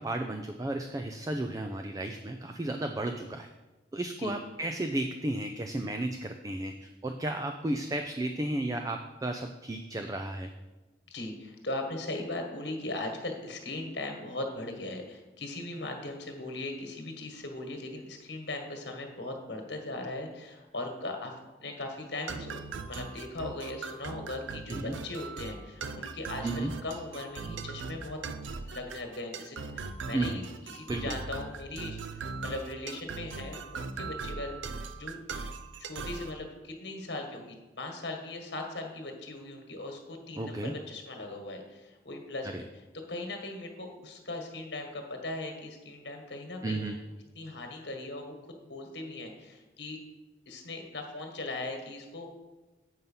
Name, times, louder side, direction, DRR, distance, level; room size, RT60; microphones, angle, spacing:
voice 1, 0.0-3.5 3.9-10.5 24.7-25.0 26.4-26.7 30.1-30.4 30.9-31.2 40.4-40.7 46.6-47.0, right 1 dB, 20° right, 5 dB, 0.3 m, -33 dB
voice 2, 11.1-28.2 28.6-35.2 35.8-42.6 43.1-46.9 47.3-50.0 50.5-52.3, left 2 dB, 65° left, 3 dB, 1.5 m, -39 dB
sound 1, 22.3-36.3, right 4 dB, 85° right, 0.5 m, -40 dB
8.0 x 5.6 x 5.5 m, 1.1 s
head